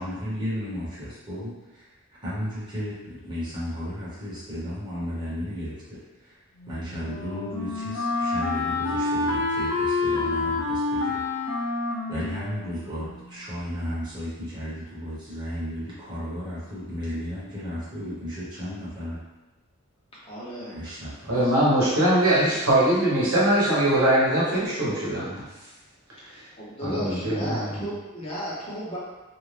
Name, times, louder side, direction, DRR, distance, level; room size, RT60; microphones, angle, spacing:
voice 1, 0.0-1.9 2.2-6.4 6.7-11.2 12.1-19.2 20.6-21.3, equal, 20° right, -10 dB, 0.9 m, -34 dB
Wind instrument woodwind instrument, 6.6-13.5, left 3 dB, 65° left, 0.5 m, -28 dB
voice 2, 20.2-20.8 21.3-21.8 26.6-29.0, equal, 25° left, -7 dB, 0.7 m, -35 dB
voice 3, 21.3-25.4 26.3-26.4 26.8-27.9, right 1 dB, 85° right, -6 dB, 1.0 m, -22 dB
2.6 x 2.2 x 3.2 m, 1.1 s
head